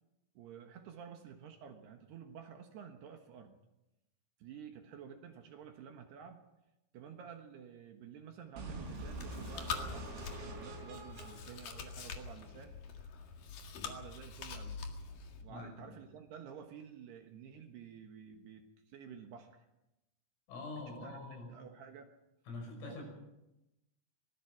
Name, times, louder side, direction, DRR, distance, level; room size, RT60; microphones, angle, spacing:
voice 1, 0.3-3.6 4.4-6.4 6.9-12.7 13.8-14.8 15.4-19.6 20.9-21.2 21.5-22.1 22.8-23.0, right 7 dB, 65° right, 5 dB, 2.9 m, -51 dB
sound 1, 8.6-12.5, right 3 dB, 85° right, 8.0 m, -46 dB
Chewing mastication, 8.8-15.4, left 5 dB, 55° left, 2.8 m, -45 dB
voice 2, 15.5-16.0 20.5-21.5 22.5-23.0, left 3 dB, 85° left, 2 dB, 8.7 m, -45 dB
24.5 x 19.0 x 6.0 m, 0.92 s
omnidirectional pair, 5.9 m